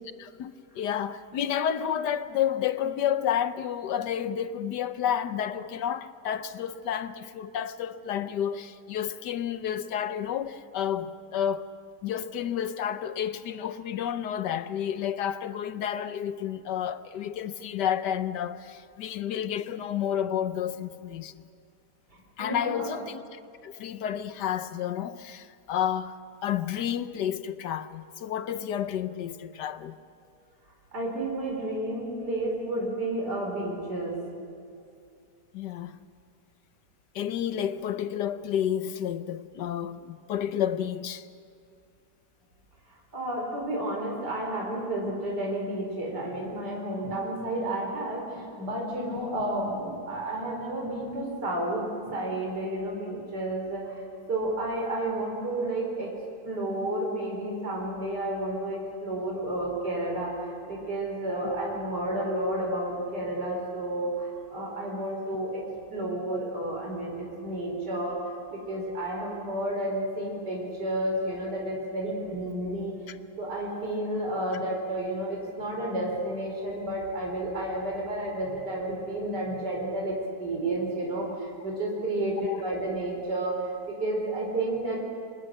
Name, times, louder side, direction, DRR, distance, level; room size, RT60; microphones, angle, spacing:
voice 1, 0.2-11.7 12.0-21.4 22.4-29.9 35.5-36.0 37.1-41.3 49.1-49.3 73.1-73.2 82.4-82.6, left 9 dB, 75° left, 1.4 m, -30 dB
voice 2, 22.1-23.0 30.9-34.2 43.1-56.1 56.4-65.6 65.9-73.0 73.4-85.0, right 1 dB, 70° right, 5.1 m, -31 dB
28.0 x 24.5 x 6.6 m
omnidirectional pair, 1.8 m